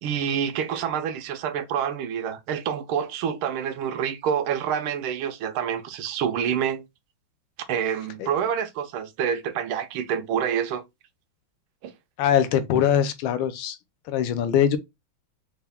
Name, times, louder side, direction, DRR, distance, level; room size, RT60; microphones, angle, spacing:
voice 1, 0.0-6.8 7.7-10.8 11.8-11.9, right 8 dB, 85° right, 1.5 m, -27 dB
voice 2, 12.2-13.8 14.1-14.8, left 9 dB, 80° left, 1.4 m, -22 dB
4.5 x 2.3 x 3.3 m
omnidirectional pair, 2.2 m